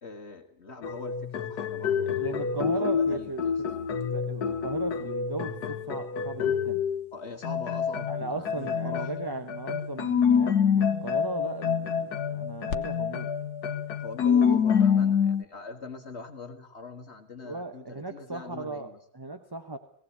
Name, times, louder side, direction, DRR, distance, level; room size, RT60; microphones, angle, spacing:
voice 1, 0.0-3.5 7.1-9.3 14.0-19.0, left 3 dB, 45° left, 4 dB, 1.9 m, -42 dB
sound 1, 0.8-7.1 7.4-15.4, left 7 dB, 75° left, 1.6 m, -27 dB
voice 2, 2.0-3.4 4.1-6.8 8.1-13.3 17.4-19.8, right 2 dB, 15° right, 7 dB, 0.9 m, -37 dB
19.5 x 17.0 x 8.5 m, 0.63 s
omnidirectional pair, 1.7 m